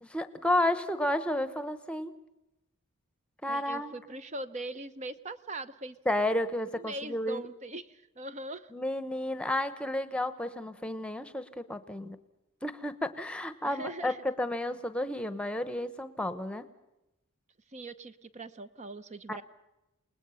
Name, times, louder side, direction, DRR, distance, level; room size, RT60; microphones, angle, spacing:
voice 1, 0.0-2.1 3.4-4.2 6.1-7.4 8.7-12.2 12.6-16.7 19.3-19.4, left 1 dB, 5° left, 12 dB, 1.1 m, -32 dB
voice 2, 3.5-6.0 6.7-8.7 13.6-14.2 17.7-19.4, right 2 dB, 35° right, 12 dB, 0.8 m, -41 dB
28.5 x 20.0 x 5.8 m, 0.94 s
head